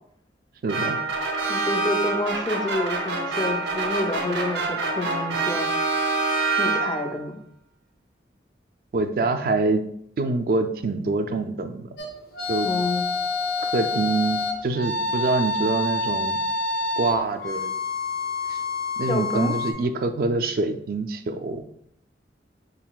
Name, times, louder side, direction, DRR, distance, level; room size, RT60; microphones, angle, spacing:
voice 1, 0.6-1.0 8.9-9.9 10.2-11.9 12.5-12.7 13.6-16.4 17.0-17.7 18.5-18.6 19.0-21.6, right 3 dB, 55° right, 8 dB, 0.3 m, -25 dB
sound 1, 0.7-7.2, right 3 dB, 75° right, 0.7 m, -26 dB
voice 2, 1.5-5.7 6.6-7.4 12.7-13.1 19.1-19.5, left 1 dB, 25° left, 4 dB, 0.4 m, -28 dB
sound 2, 12.0-19.7, left 3 dB, 55° left, 0.8 m, -27 dB
4.9 x 3.8 x 2.3 m, 0.70 s
head